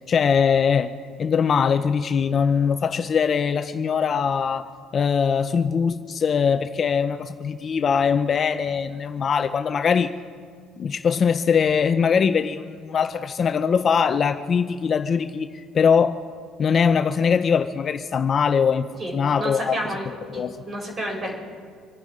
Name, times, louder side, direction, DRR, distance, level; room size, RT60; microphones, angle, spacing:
voice 1, 0.1-0.9 1.2-10.1 10.8-16.2 16.6-18.9 19.1-19.8 20.1-20.6, left 6 dB, 35° left, 10 dB, 0.5 m, -22 dB
voice 2, 19.0-20.1 20.3-21.4, right 1 dB, 30° right, 0 dB, 4.9 m, -30 dB
26.0 x 10.5 x 5.0 m, 2.1 s
cardioid pair, 135°, 0 cm